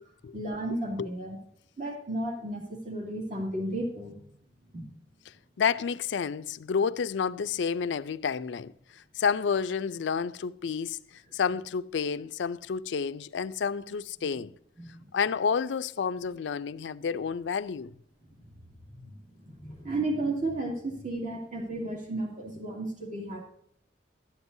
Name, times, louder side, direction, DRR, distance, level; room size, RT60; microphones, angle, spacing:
voice 1, 0.3-1.4 1.8-4.2 4.7-4.9 14.8-15.0 19.5-23.4, right 1 dB, 45° right, 2.2 m, -33 dB
voice 2, 5.6-14.5 15.1-17.9, left 6 dB, 80° left, 0.4 m, -30 dB
13.0 x 9.5 x 2.7 m
head